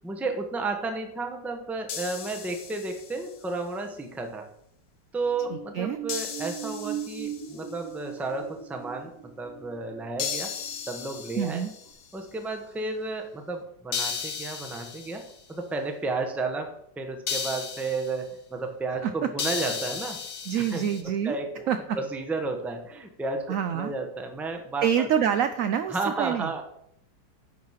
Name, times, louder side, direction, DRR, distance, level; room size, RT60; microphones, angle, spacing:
voice 1, 0.0-4.4 5.1-9.1 9.4-10.5 10.9-11.6 12.1-15.2 15.5-20.2 20.6-20.8 21.2-24.9 25.9-26.6, right 3 dB, ahead, 4 dB, 0.6 m, -32 dB
sound 1, 1.9-3.3 6.1-7.7 10.2-12.1 13.9-15.4 17.3-18.2 19.4-21.0, left 6 dB, 65° left, 1.2 m, -35 dB
sound 2, 5.3-11.5 11.9-12.0, right 9 dB, 45° right, 0.8 m, -40 dB
voice 2, 5.5-6.0 11.4-11.7 19.0-19.1 20.5-21.4 21.7-22.0 23.5-23.9 24.8-26.5, right 8 dB, 80° right, 9 dB, 0.7 m, -26 dB
10.5 x 4.7 x 5.6 m, 0.73 s
omnidirectional pair, 2.0 m